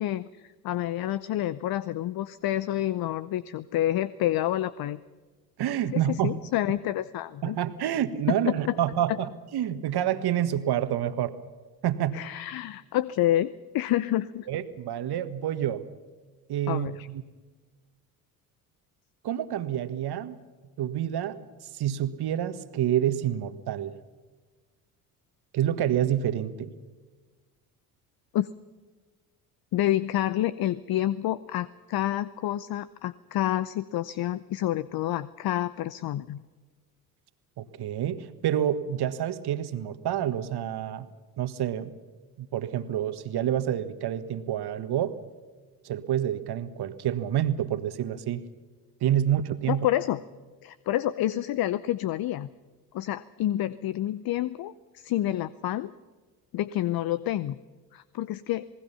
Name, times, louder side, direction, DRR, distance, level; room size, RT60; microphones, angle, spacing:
voice 1, 0.0-5.0 5.9-7.6 8.3-8.8 12.1-14.5 16.7-17.1 28.3-28.5 29.7-36.4 49.7-50.2 50.6-52.5 52.9-55.9 56.5-57.6 57.9-58.6, left 13 dB, 50° left, 17 dB, 0.8 m, -28 dB
voice 2, 5.6-6.4 7.4-11.4 11.8-12.2 14.5-15.8 16.5-17.2 19.2-20.4 20.8-24.0 25.5-26.7 37.6-41.1 41.4-41.9 42.4-45.2 45.8-48.5 49.0-49.9, right 10 dB, 50° right, 11 dB, 1.7 m, -28 dB
28.0 x 19.5 x 5.7 m, 1.4 s
hypercardioid pair, 55°, 48 cm